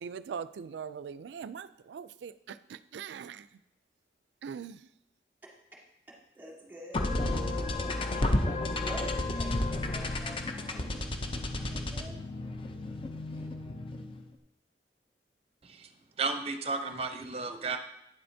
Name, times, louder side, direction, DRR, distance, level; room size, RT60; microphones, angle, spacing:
voice 1, 0.0-3.4 4.4-4.8, right 7 dB, 75° right, 15 dB, 0.3 m, -41 dB
voice 2, 5.4-5.8 6.1-7.4 8.1-11.1 11.7-12.3 13.3-13.5, right 1 dB, 10° right, -3 dB, 1.9 m, -47 dB
sound 1, 6.9-14.3, left 2 dB, 30° left, 0.6 m, -32 dB
voice 3, 16.2-17.8, right 4 dB, 35° right, 7 dB, 0.7 m, -33 dB
9.2 x 7.6 x 2.7 m, 0.84 s
head